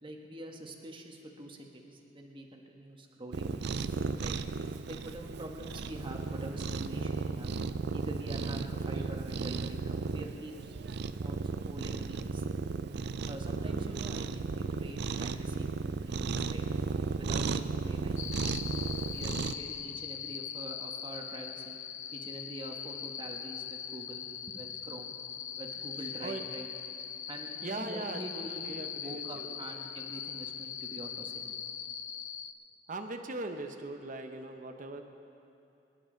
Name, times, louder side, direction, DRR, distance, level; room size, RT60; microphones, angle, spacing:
voice 1, 0.0-3.8 4.2-4.4 4.9-7.5 7.9-12.4 13.3-16.7 17.1-18.4 19.1-21.8 22.1-25.1 25.5-26.7 27.3-31.5, right 1 dB, 30° right, 1 dB, 1.2 m, -45 dB
Cat, 3.3-19.5, right 4 dB, 65° right, 0.5 m, -35 dB
sound 1, 18.2-32.5, left 8 dB, 45° left, 0.5 m, -41 dB
voice 2, 27.6-28.2 28.5-29.5 32.9-35.0, right 2 dB, 45° right, 6 dB, 0.8 m, -39 dB
24.0 x 10.5 x 3.9 m, 2.7 s
head